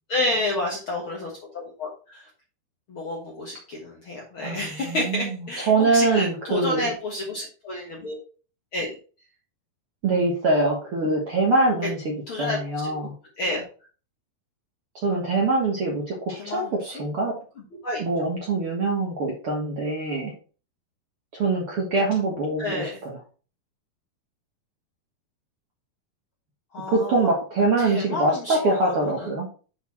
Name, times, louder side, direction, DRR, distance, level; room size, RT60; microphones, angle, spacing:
voice 1, 0.1-2.3 2.9-8.2 8.7-8.9 12.3-12.9 13.4-13.6 16.3-16.9 17.8-18.0 22.6-23.0 26.7-27.3 27.8-29.3, left 2 dB, 55° left, -2 dB, 1.5 m, -30 dB
voice 2, 4.4-5.4 5.6-6.9 10.0-13.1 15.0-16.2 16.4-17.4 18.0-20.3 21.3-23.2 26.9-29.5, right 2 dB, 55° right, -2 dB, 1.6 m, -24 dB
8.0 x 4.2 x 4.3 m, 0.37 s
omnidirectional pair, 4.3 m